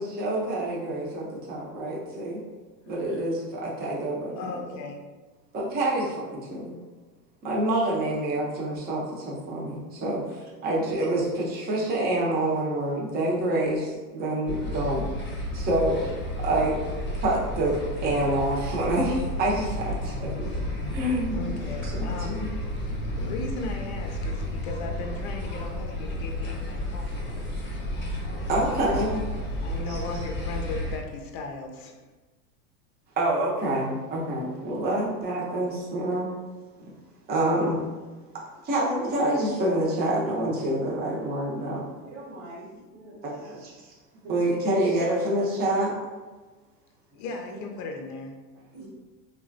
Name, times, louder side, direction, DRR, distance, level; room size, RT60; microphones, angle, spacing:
voice 1, 0.0-2.4 2.9-4.6 5.5-6.7 7.4-15.1 15.5-16.0 16.4-16.8 17.1-20.3 20.9-21.4 21.8-22.5 28.5-29.2 29.9-30.0 33.2-36.3 36.8-36.9 37.3-37.8 38.6-41.8 43.2-43.9 44.3-45.9, right 1 dB, 20° right, -4 dB, 0.6 m, -27 dB
voice 2, 4.4-5.0 21.3-22.5 22.8-27.5 28.6-29.0 29.6-32.0 47.1-48.4, left 3 dB, 60° left, 3 dB, 0.5 m, -37 dB
sound 1, 14.5-31.0, left 1 dB, 25° left, 0.9 m, -32 dB
voice 3, 42.0-43.4 44.2-44.3 47.5-47.6 48.7-48.9, right 2 dB, 50° right, -5 dB, 0.9 m, -44 dB
3.0 x 2.3 x 2.5 m, 1.3 s
hypercardioid pair, 115°, 49 cm